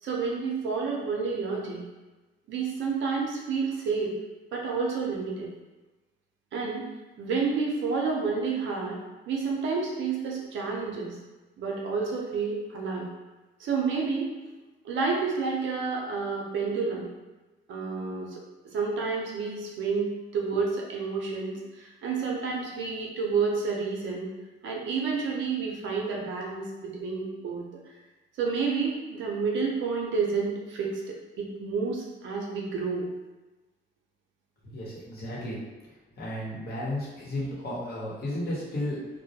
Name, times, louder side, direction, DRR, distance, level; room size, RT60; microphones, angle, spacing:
voice 1, 0.0-1.8 2.5-4.1 4.5-5.5 6.5-6.9 7.2-9.0 9.3-11.2 11.6-13.1 13.6-14.3 14.8-17.1 17.7-24.3 24.6-27.7 28.4-33.1, right 4 dB, 70° right, -2 dB, 0.6 m, -30 dB
voice 2, 34.6-35.6 35.9-39.1, left 1 dB, 50° left, -6 dB, 1.0 m, -34 dB
2.2 x 2.1 x 2.7 m, 1.2 s
cardioid pair, 90°, 20 cm